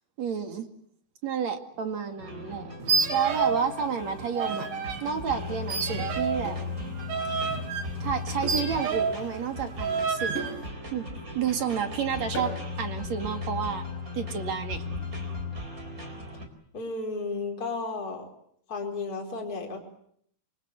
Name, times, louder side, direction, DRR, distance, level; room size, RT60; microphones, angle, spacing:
voice 1, 0.2-0.7 1.2-4.7 5.0-6.6 8.0-10.4 10.9-11.1 11.3-12.5 12.8-13.8 14.1-14.8, right 7 dB, 50° right, 7 dB, 3.0 m, -30 dB
sound 1, 2.2-16.5, left 3 dB, 20° right, 4.2 m, -37 dB
sound 2, 2.8-3.7 4.0-5.0 5.7-9.3 9.8-10.5, right 5 dB, 85° right, 4.8 m, -29 dB
sound 3, 4.5-4.7 6.4-6.7 8.4-8.7 9.0-9.1 10.3-10.7 12.3-12.7, right 2 dB, 35° left, 9.1 m, -36 dB
voice 2, 16.7-18.2 18.7-19.8, left 3 dB, 20° left, 1 dB, 4.8 m, -33 dB
28.0 x 25.0 x 8.3 m, 0.67 s
omnidirectional pair, 4.6 m